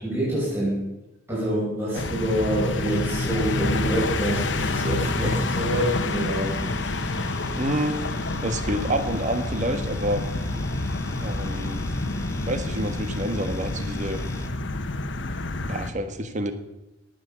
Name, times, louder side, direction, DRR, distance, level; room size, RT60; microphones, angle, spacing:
voice 1, 0.0-0.9 1.3-6.6, right 1 dB, 15° right, -9 dB, 6.2 m, -26 dB
sound 1, 1.9-15.9, left 2 dB, 75° left, 1.1 m, -28 dB
sound 2, 2.9-14.5, left 1 dB, 15° left, 1.6 m, -39 dB
voice 2, 7.6-8.0 8.4-10.2 11.2-11.8 12.5-14.2 15.7-16.5, right 1 dB, 40° right, 8 dB, 1.5 m, -28 dB
18.0 x 7.9 x 6.9 m, 0.94 s
head